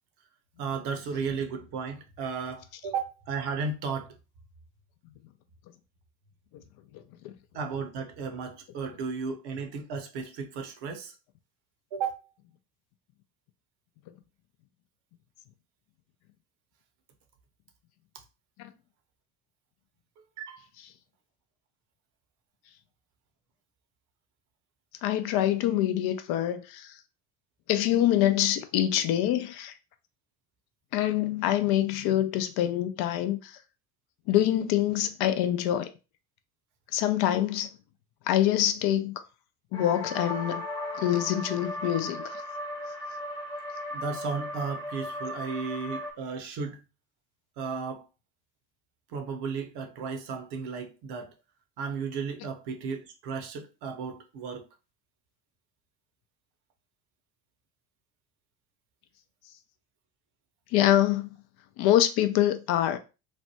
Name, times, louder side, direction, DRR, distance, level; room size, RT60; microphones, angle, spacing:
voice 1, 0.6-4.1 7.5-11.1 11.9-12.2 20.4-20.6 43.9-46.8 47.6-48.1 49.1-51.3 51.8-54.6, right 5 dB, 55° right, 0.8 m, -34 dB
voice 2, 25.0-26.9 27.7-29.7 30.9-33.6 34.3-35.9 36.9-37.7 38.3-39.1 39.7-40.6 41.0-42.4 60.7-61.3 61.8-63.0, left 12 dB, 55° left, 0.5 m, -25 dB
sound 1, 39.7-46.1, left 1 dB, 10° left, 0.8 m, -36 dB
3.2 x 2.1 x 2.8 m
hypercardioid pair, 65°, 48 cm